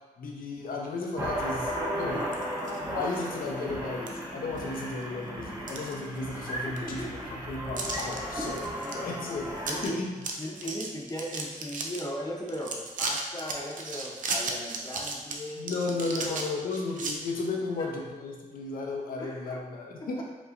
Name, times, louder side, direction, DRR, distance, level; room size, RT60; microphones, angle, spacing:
voice 1, 0.2-2.2 2.9-10.1 15.6-20.2, left 3 dB, 90° left, 0 dB, 0.7 m, -34 dB
sound 1, 1.2-9.9, equal, 20° right, 0.9 m, -35 dB
sound 2, 2.2-2.8 3.3-3.4 4.1-4.2 4.6-5.0 5.4-6.5 6.8-6.9 7.8-8.2 8.5-9.0 9.2-9.3 9.6-9.9 10.2-12.0 12.5-17.1, right 3 dB, 65° right, 0.5 m, -35 dB
voice 2, 6.6-7.4 8.8-9.0 9.6-10.0 10.4-15.7 16.1-16.5 17.8-17.9 19.2-19.6 19.9-20.2, equal, 25° left, -2 dB, 0.8 m, -38 dB
5.1 x 3.1 x 2.5 m, 1.2 s
wide cardioid pair, 105°, 14 cm